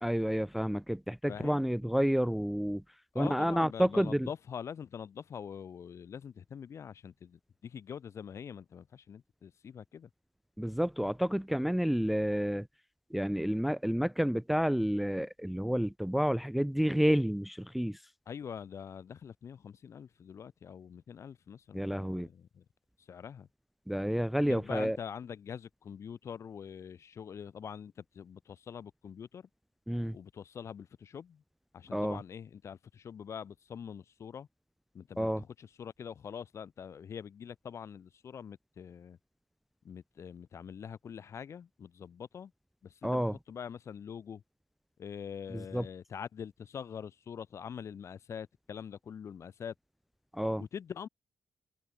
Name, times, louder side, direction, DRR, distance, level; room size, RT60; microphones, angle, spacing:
voice 1, 0.0-2.8 3.2-4.3 10.6-12.7 13.1-18.0 21.7-22.3 23.9-25.0 29.9-30.2 31.9-32.2 35.2-35.4 43.0-43.3 45.5-45.8 50.3-50.6, equal, ahead, 0.3 m, -30 dB
voice 2, 1.3-1.6 3.1-10.1 18.3-22.6 23.1-23.5 24.4-29.5 30.1-31.4 31.7-34.5 34.9-39.2 39.8-42.5 42.8-44.4 45.0-49.7 50.6-51.1, left 7 dB, 55° left, 1.9 m, -44 dB
hypercardioid pair, 40°, 6 cm